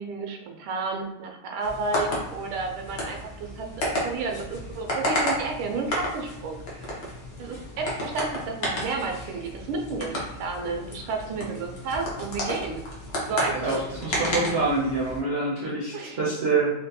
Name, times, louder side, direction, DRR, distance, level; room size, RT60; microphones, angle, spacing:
voice 1, 0.0-6.8 7.4-12.8 13.2-13.8 15.9-16.2, right 4 dB, 90° right, 2 dB, 1.5 m, -32 dB
sound 1, 1.6-15.2, left 1 dB, 60° left, 0.7 m, -32 dB
voice 2, 13.4-16.7, right 3 dB, 70° right, -8 dB, 0.5 m, -26 dB
4.3 x 2.2 x 2.6 m, 0.89 s
omnidirectional pair, 2.3 m